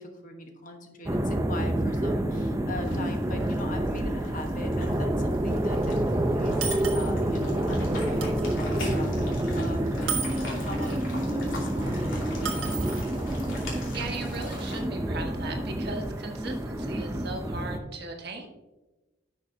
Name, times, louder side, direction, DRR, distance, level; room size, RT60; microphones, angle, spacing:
voice 1, 0.0-12.9, left 2 dB, 40° left, 3 dB, 1.2 m, -41 dB
sound 1, 1.1-17.8, right 1 dB, 15° right, 0.5 m, -28 dB
sound 2, 2.8-14.8, left 2 dB, 80° left, 2.8 m, -42 dB
sound 3, 5.5-5.6 5.8-5.9 6.6-7.1 8.1-8.5 10.1-10.9 12.5-13.1, right 6 dB, 80° right, 1.6 m, -34 dB
voice 2, 13.9-18.5, right 3 dB, 55° right, 2 dB, 1.4 m, -38 dB
11.0 x 6.5 x 2.7 m, 1.1 s
head